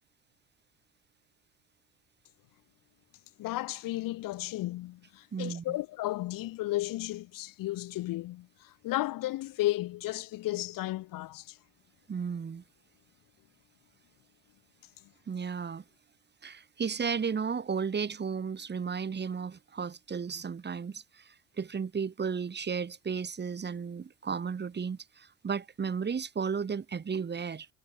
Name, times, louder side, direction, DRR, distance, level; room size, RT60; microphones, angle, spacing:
voice 1, 3.4-11.6, left 17 dB, 60° left, 1.6 m, -34 dB
voice 2, 5.3-5.8 12.1-12.6 15.3-15.8 16.4-27.7, right 6 dB, 30° right, 2.0 m, -34 dB
supercardioid pair, 85°, 37 cm